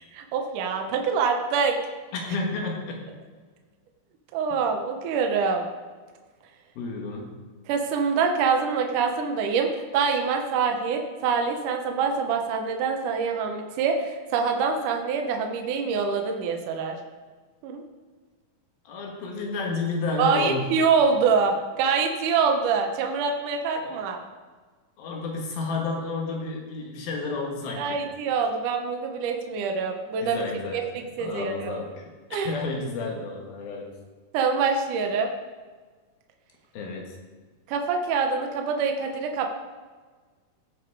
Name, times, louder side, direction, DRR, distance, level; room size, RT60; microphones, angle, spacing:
voice 1, 0.1-1.8 4.3-5.6 7.7-17.0 17.6-17.8 20.2-24.2 27.8-30.4 30.7-30.8 31.2-31.7 32.3-32.5 34.3-35.3 37.7-39.5, right 5 dB, 70° right, 3 dB, 2.2 m, -25 dB
voice 2, 2.1-3.0 6.8-7.4 18.8-20.7 23.8-24.0 25.0-28.0 30.2-30.8 31.2-32.1 32.4-33.9 36.7-37.2, left 3 dB, 80° left, 0 dB, 3.2 m, -31 dB
16.5 x 5.5 x 4.7 m, 1.4 s
omnidirectional pair, 4.2 m